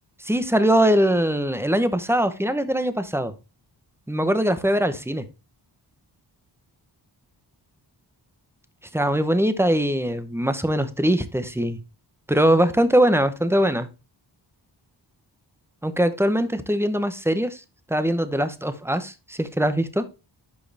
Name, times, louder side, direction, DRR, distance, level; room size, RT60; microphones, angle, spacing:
voice 1, 0.2-3.3 4.1-5.2 8.9-11.8 12.3-13.9 15.8-17.6 17.9-20.0, right 1 dB, 5° right, 11 dB, 0.9 m, -22 dB
11.5 x 4.8 x 3.4 m, 0.29 s
wide cardioid pair, 95°, 44 cm